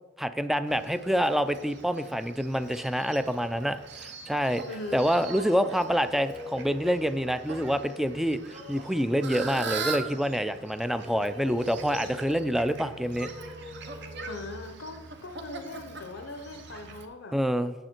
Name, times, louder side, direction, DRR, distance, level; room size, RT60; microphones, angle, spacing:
voice 1, 0.2-4.6 4.9-13.3 17.3-17.7, equal, ahead, 11 dB, 0.3 m, -27 dB
Fowl, 0.7-17.0, right 4 dB, 60° right, 0.9 m, -41 dB
sound 1, 4.6-7.4 8.4-9.9 10.7-12.2 13.1-14.6, left 1 dB, 40° right, 2.3 m, -45 dB
voice 2, 4.7-5.1 14.3-17.4, left 2 dB, 70° left, 5 dB, 0.7 m, -40 dB
8.9 x 7.1 x 4.4 m, 1.1 s
head